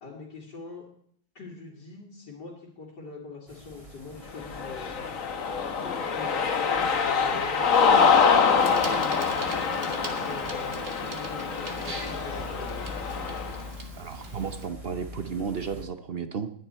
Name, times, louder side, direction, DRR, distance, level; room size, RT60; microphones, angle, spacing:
voice 1, 0.0-0.9 1.3-5.4 5.8-7.7 8.6-13.0, left 4 dB, 65° left, -2 dB, 3.1 m, -43 dB
sound 1, 3.5-15.8, left 2 dB, 15° right, 2.6 m, -45 dB
Cheering, 4.4-13.6, left 5 dB, 50° left, 1.4 m, -25 dB
Bicycle, 8.6-14.7, right 3 dB, 35° right, 1.6 m, -41 dB
voice 2, 14.0-16.5, right 6 dB, 55° right, 9 dB, 0.6 m, -33 dB
20.0 x 9.8 x 4.5 m, 0.64 s
omnidirectional pair, 2.0 m